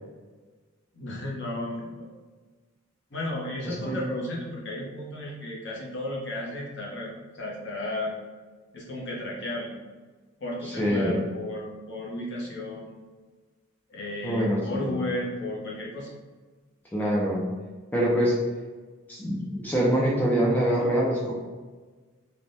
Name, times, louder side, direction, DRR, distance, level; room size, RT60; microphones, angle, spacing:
voice 1, 0.9-2.1 3.1-8.1 8.7-9.7 10.4-12.9 13.9-16.1, left 1 dB, 55° left, -3 dB, 0.7 m, -34 dB
voice 2, 3.6-4.0 10.6-11.2 14.2-15.0 16.9-17.4 17.9-18.4 19.1-21.3, equal, 10° left, -5 dB, 0.4 m, -25 dB
3.2 x 2.1 x 2.6 m, 1.3 s
head